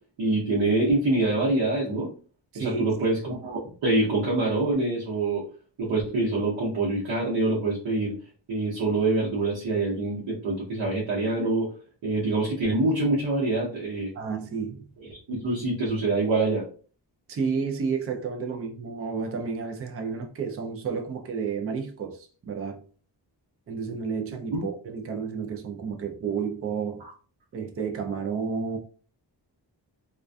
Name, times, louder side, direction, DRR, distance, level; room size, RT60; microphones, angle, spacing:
voice 1, 0.2-2.1 2.5-5.4 5.8-8.2 8.5-11.7 12.0-14.1 15.1-16.6 24.5-24.6 27.0-27.1, right 2 dB, 80° right, 0.8 m, -25 dB
voice 2, 2.5-2.8 14.1-14.9 17.3-22.8 23.7-27.1 27.5-28.8, right 5 dB, 35° right, 0.4 m, -31 dB
2.4 x 2.2 x 2.2 m
wide cardioid pair, 150°, 44 cm